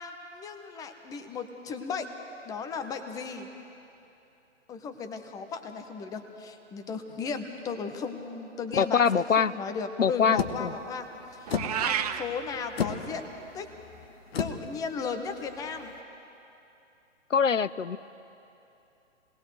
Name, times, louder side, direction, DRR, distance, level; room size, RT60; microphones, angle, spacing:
voice 1, 0.0-2.1 2.4-3.5 4.7-11.1 11.3-11.5 11.8-13.2 13.5-13.7 14.4-15.9, left 5 dB, 10° left, 7 dB, 0.8 m, -35 dB
voice 2, 8.8-9.5 10.0-10.7 17.3-18.0, left 6 dB, 85° left, 17 dB, 0.6 m, -24 dB
sound 1, 10.4-16.0, left 6 dB, 55° left, 1.2 m, -35 dB
Meow, 11.5-12.2, right 9 dB, 30° right, 0.7 m, -29 dB
27.5 x 19.0 x 4.9 m, 2.9 s
figure-of-eight pair, 125°, 37 cm